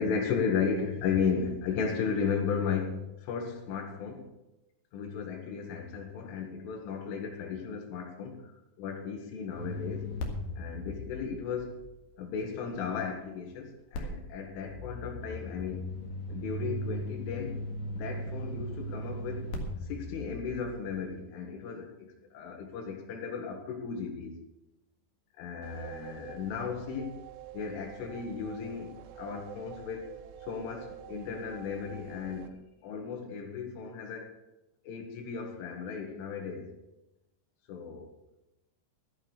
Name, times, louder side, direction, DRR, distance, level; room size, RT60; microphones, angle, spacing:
voice 1, 0.0-4.3 4.9-8.5 8.8-10.1 10.6-11.8 12.2-15.8 16.3-17.6 17.9-19.5 19.8-24.3 25.4-27.2 27.5-30.1 30.4-34.3 34.8-36.7 37.7-38.1, left 6 dB, 90° left, 4.3 m, -35 dB
sound 1, 9.5-12.7 13.9-20.9, left 1 dB, 55° left, 2.4 m, -38 dB
sound 2, 25.6-32.5, right 9 dB, 80° right, 3.0 m, -47 dB
13.0 x 8.8 x 6.7 m
omnidirectional pair, 5.5 m